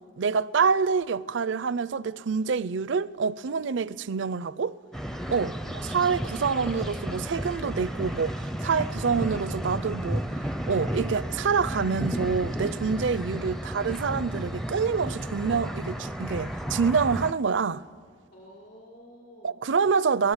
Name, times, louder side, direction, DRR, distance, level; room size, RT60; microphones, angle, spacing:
voice 1, 0.2-4.7 5.3-5.5 5.8-10.3 10.7-17.8 19.4-20.3, right 5 dB, 65° right, 0.5 m, -26 dB
sound 1, 4.9-17.3, equal, ahead, 0.5 m, -33 dB
voice 2, 5.0-6.1 12.7-13.0 18.3-19.6, equal, 50° left, 3.6 m, -50 dB
24.5 x 19.0 x 8.1 m
head